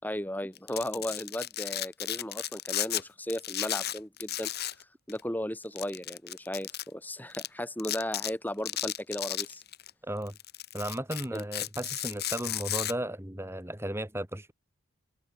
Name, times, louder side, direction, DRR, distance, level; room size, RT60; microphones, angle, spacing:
voice 1, 0.0-4.5 4.8-9.6 11.3-11.4, left 1 dB, 10° left, 5.4 m, -36 dB
Domestic sounds home sounds, 0.5-3.0 3.3-4.8 5.1-5.2 5.8-6.8 7.3-7.5 7.8-8.3 8.7-9.9 10.3-12.9, left 13 dB, 50° left, 4.5 m, -34 dB
voice 2, 10.0-10.3 10.7-14.5, right 1 dB, 10° right, 2.1 m, -35 dB
open air
head